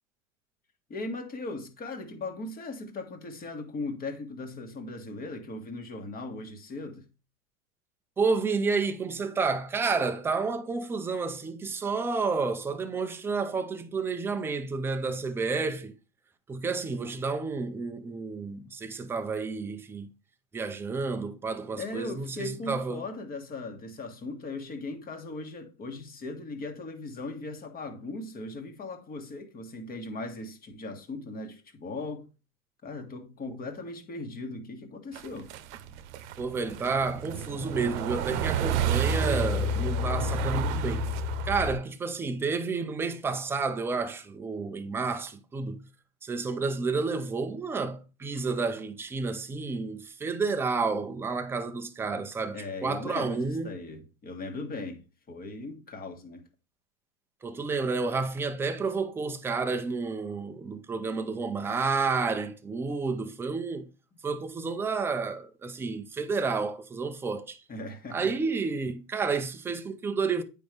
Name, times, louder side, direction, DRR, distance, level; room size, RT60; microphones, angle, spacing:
voice 1, 0.9-7.1 21.7-32.3 32.8-35.5 52.5-55.0 55.3-56.4 67.7-68.4, left 2 dB, 20° left, 1.6 m, -38 dB
voice 2, 8.2-15.9 16.5-20.1 20.5-23.0 33.5-33.6 36.4-41.1 41.4-45.8 46.2-53.7 57.4-63.9 64.2-67.6 68.1-70.4, right 4 dB, 5° right, 0.4 m, -30 dB
sound 1, 35.1-41.8, right 3 dB, 50° right, 1.0 m, -29 dB
8.6 x 5.4 x 3.2 m
hypercardioid pair, 125°, 43 cm